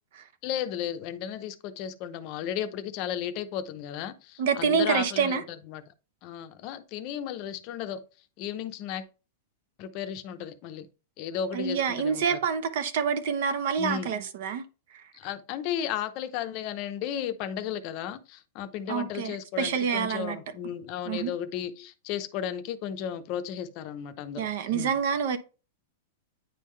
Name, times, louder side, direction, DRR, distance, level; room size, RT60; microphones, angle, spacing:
voice 1, 0.4-5.4 5.7-5.8 6.2-8.0 8.4-9.1 9.8-10.9 11.2-12.4 13.8-14.1 15.1-25.0, left 9 dB, 40° left, 0.7 m, -34 dB
voice 2, 4.4-5.4 11.5-14.6 18.9-20.4 21.0-21.3 24.4-25.4, right 6 dB, 55° right, 0.9 m, -27 dB
9.1 x 3.6 x 3.2 m
supercardioid pair, 160°, 0 cm